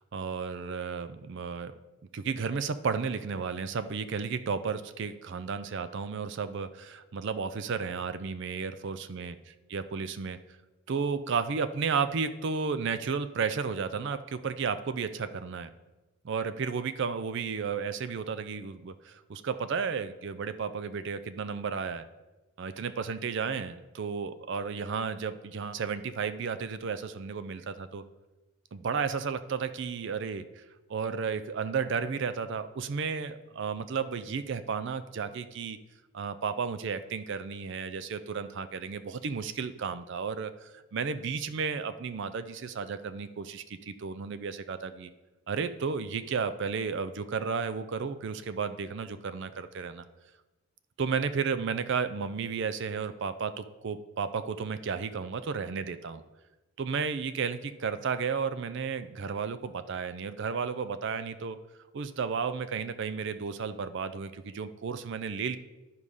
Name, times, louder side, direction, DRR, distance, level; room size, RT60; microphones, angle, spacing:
voice 1, 0.0-1.7 2.1-9.4 9.7-10.4 10.9-15.7 16.2-22.1 22.6-28.0 28.7-30.6 30.9-35.8 36.1-45.1 45.5-50.0 51.0-56.2 56.8-61.6 61.9-65.6, right 5 dB, 55° right, 12 dB, 0.4 m, -33 dB
10.5 x 4.8 x 5.4 m, 1.1 s
head